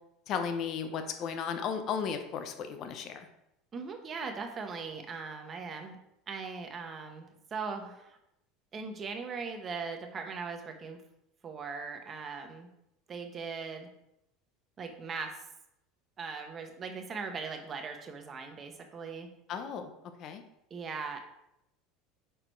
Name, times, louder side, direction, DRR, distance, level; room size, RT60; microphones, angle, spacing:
voice 1, 0.3-3.3 19.5-19.9 20.2-20.4, left 7 dB, 50° left, 7 dB, 0.9 m, -35 dB
voice 2, 3.7-6.0 6.3-8.2 8.7-11.0 11.4-12.7 13.1-13.9 14.8-15.4 16.2-19.3 20.7-21.2, right 5 dB, 35° right, 4 dB, 1.2 m, -39 dB
6.3 x 4.8 x 4.6 m, 0.83 s
supercardioid pair, 105°, 0 cm